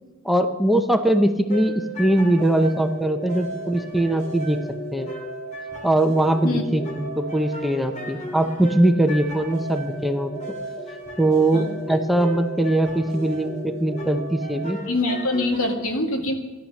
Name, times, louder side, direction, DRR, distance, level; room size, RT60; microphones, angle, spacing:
voice 1, 0.2-4.6 4.9-5.1 5.8-10.4 11.2-14.8, right 1 dB, ahead, 7 dB, 0.8 m, -21 dB
sound 1, 1.5-15.7, right 1 dB, 35° left, 2.5 m, -35 dB
voice 2, 14.9-16.3, left 2 dB, 80° left, 5 dB, 2.0 m, -24 dB
14.5 x 11.5 x 6.5 m, 1.2 s
head